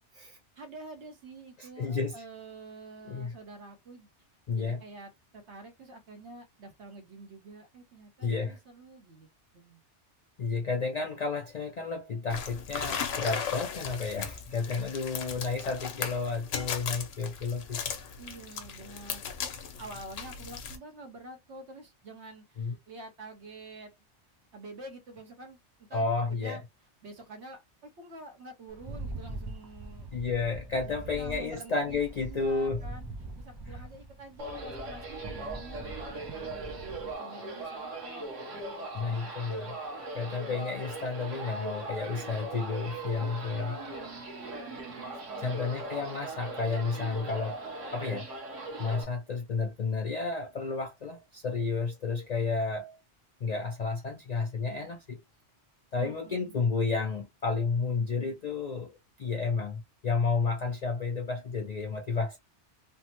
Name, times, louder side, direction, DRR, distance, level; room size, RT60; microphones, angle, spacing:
voice 1, 0.6-4.1 4.5-9.3 9.5-9.8 18.2-19.5 19.8-23.9 24.5-26.6 27.0-30.1 30.8-33.1 33.4-38.9 39.1-39.3 43.2-45.6 55.9-56.6, right 2 dB, 70° right, 1.2 m, -48 dB
voice 2, 1.6-2.1 3.1-3.3 4.5-4.8 8.2-8.6 10.4-17.8 22.6-22.7 25.9-26.6 30.1-32.8 33.7-33.8 38.9-39.8 40.1-43.8 45.4-47.6 47.9-48.3 48.8-53.0 53.4-55.2 55.9-62.4, left 4 dB, 60° left, 0.4 m, -31 dB
sound 1, 12.3-20.8, left 7 dB, 85° left, 1.0 m, -37 dB
Rattle, 28.7-37.1, right 2 dB, 35° right, 0.4 m, -43 dB
sound 2, 34.4-49.0, right 2 dB, 90° right, 1.4 m, -39 dB
3.3 x 2.0 x 2.8 m
omnidirectional pair, 1.2 m